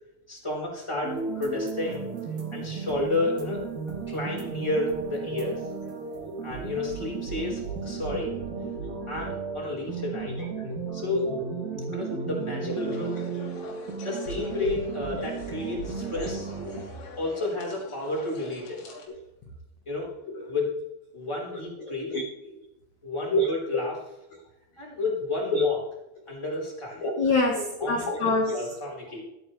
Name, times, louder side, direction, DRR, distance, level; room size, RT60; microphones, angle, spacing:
voice 1, 0.3-2.1 2.5-3.6 4.1-5.7 6.4-8.3 9.1-10.4 10.9-11.3 11.9-13.1 14.0-16.5 17.2-18.8 19.9-20.1 20.5-20.7 21.1-22.1 23.0-23.9 24.8-25.8 26.3-27.0 27.5-29.2, left 3 dB, 5° left, -3 dB, 3.7 m, -31 dB
sound 1, 1.0-16.8, right 5 dB, 45° right, 3.1 m, -34 dB
voice 2, 10.4-10.7 11.3-11.4 13.4-13.5 19.1-19.2 20.3-20.5 21.8-22.6 23.3-23.5 25.5-25.6 27.0-28.7, left 2 dB, 70° left, 1 dB, 1.7 m, -27 dB
sound 2, 12.7-19.1, left 3 dB, 90° left, 5.7 m, -44 dB
13.5 x 13.0 x 3.3 m, 0.92 s
omnidirectional pair, 5.6 m